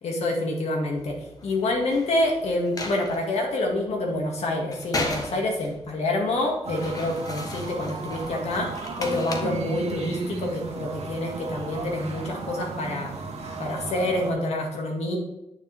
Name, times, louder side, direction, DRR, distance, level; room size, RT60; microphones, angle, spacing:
voice 1, 0.0-13.1 13.6-15.2, left 1 dB, 75° left, 1 dB, 2.1 m, -27 dB
sound 1, 1.0-13.8, left 2 dB, 35° left, 1.1 m, -39 dB
sound 2, 6.6-14.3, right 4 dB, 75° right, 1.5 m, -35 dB
9.2 x 6.8 x 3.5 m, 0.91 s
wide cardioid pair, 170°, 11 cm